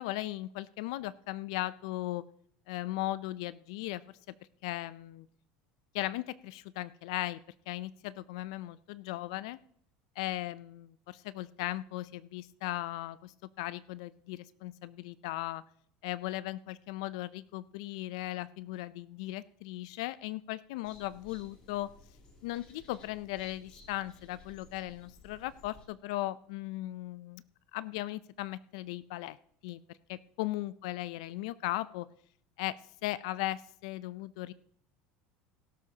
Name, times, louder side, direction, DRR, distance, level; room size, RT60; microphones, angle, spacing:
voice 1, 0.0-2.3 2.7-4.0 4.6-5.3 5.9-7.4 7.7-9.6 10.2-15.6 16.0-21.9 22.4-27.4 27.7-29.4 29.6-29.8 30.1-32.1 32.6-32.8 33.0-34.5, left 16 dB, 80° left, 17 dB, 0.4 m, -37 dB
sound 1, 20.8-25.9, left 2 dB, 35° left, 2.7 m, -57 dB
17.5 x 12.0 x 2.8 m, 0.65 s
cardioid pair, 160°, 3 cm